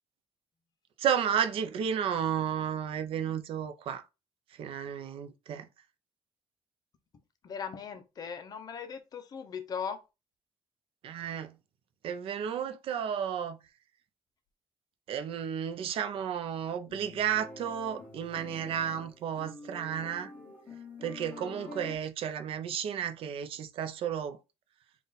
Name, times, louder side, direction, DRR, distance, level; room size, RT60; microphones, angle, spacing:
voice 1, 1.0-4.0 4.6-5.7 11.0-11.5 12.0-13.6 15.1-20.3 21.0-24.4, right 8 dB, 60° right, 0.5 m, -32 dB
voice 2, 7.4-10.0, left 6 dB, 35° left, 0.6 m, -38 dB
sound 1, 16.9-22.0, left 3 dB, 15° left, 1.1 m, -46 dB
4.0 x 2.3 x 3.9 m
cardioid pair, 180°, 11 cm